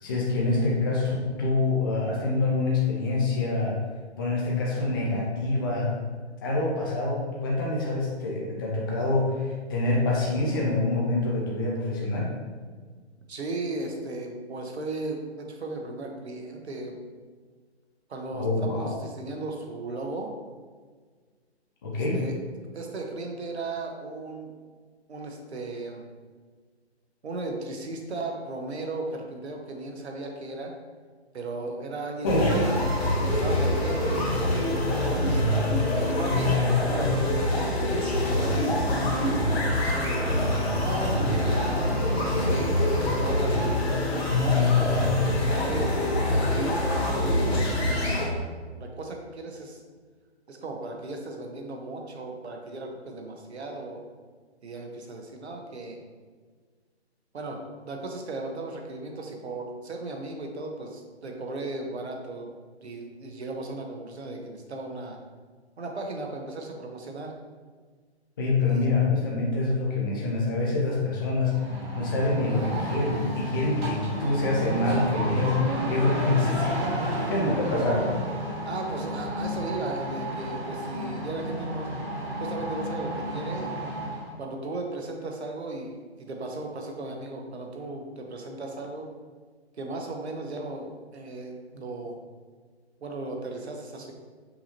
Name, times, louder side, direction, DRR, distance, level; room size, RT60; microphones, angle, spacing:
voice 1, 0.0-3.8 4.2-5.9 6.4-12.3 18.3-18.9 21.8-22.2 32.2-32.7 68.4-71.6 71.9-76.9 77.2-78.1, left 2 dB, 20° left, -3 dB, 0.5 m, -26 dB
voice 2, 13.3-17.0 18.1-20.3 21.9-22.3 22.7-24.5 25.1-26.0 27.2-30.7 31.3-34.2 34.9-40.3 40.8-41.8 42.1-43.8 44.3-49.8 50.5-54.0 54.6-56.0 57.3-62.5 62.8-65.2 65.8-67.3 68.6-68.9 77.6-77.7 78.6-82.0 82.4-83.7 84.4-89.1 89.8-92.2 93.0-94.1, right 2 dB, 70° right, 2 dB, 1.0 m, -36 dB
sound 1, 32.3-48.3, left 1 dB, 65° left, 1.5 m, -25 dB
sound 2, 71.5-84.3, equal, 25° right, 1.0 m, -32 dB
5.6 x 2.8 x 2.9 m, 1.5 s
figure-of-eight pair, 145°, 34 cm